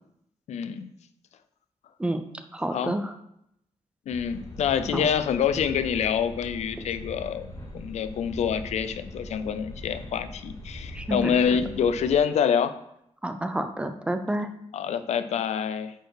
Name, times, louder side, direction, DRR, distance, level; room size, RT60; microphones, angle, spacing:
voice 1, 0.5-0.9 2.7-2.9 4.1-7.5 7.7-12.7 14.7-15.9, left 7 dB, 80° left, 11 dB, 0.6 m, -26 dB
voice 2, 2.5-3.1 4.9-5.0 10.9-11.3 13.2-14.5, right 1 dB, 10° right, 8 dB, 0.5 m, -29 dB
sound 1, 4.1-12.2, left 1 dB, 30° left, 3.3 m, -41 dB
8.9 x 4.6 x 4.7 m, 0.76 s
wide cardioid pair, 175°, 11 cm